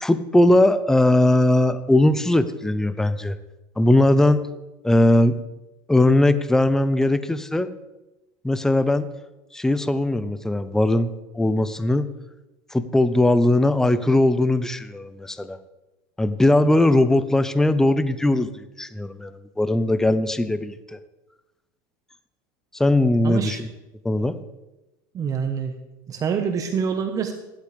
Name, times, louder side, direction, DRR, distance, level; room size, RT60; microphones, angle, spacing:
voice 1, 0.0-3.4 3.8-4.4 4.8-5.3 5.9-7.7 8.4-9.1 9.5-11.1 11.3-12.1 12.7-15.6 16.2-21.0 22.7-23.6 24.0-24.4, left 1 dB, 5° left, 13 dB, 0.6 m, -19 dB
voice 2, 23.2-23.6 25.1-25.7 26.1-27.3, right 6 dB, 35° right, 6 dB, 1.1 m, -26 dB
15.5 x 11.5 x 3.4 m, 1.0 s
supercardioid pair, 120°, 10 cm